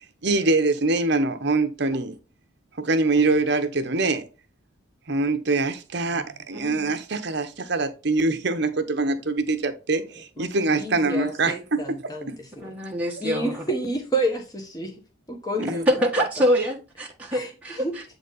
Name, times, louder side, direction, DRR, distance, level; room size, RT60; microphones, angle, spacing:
voice 1, 0.2-2.2 2.8-4.3 5.1-12.3 13.1-13.2 15.6-15.9, right 3 dB, 55° right, 0.8 m, -24 dB
voice 2, 10.4-12.6 13.2-14.9 15.3-15.8 17.3-17.5 17.8-17.9, right 1 dB, 15° left, 1.1 m, -29 dB
voice 3, 12.6-13.6 15.9-18.0, equal, 5° right, 1.4 m, -25 dB
7.8 x 4.0 x 3.9 m
head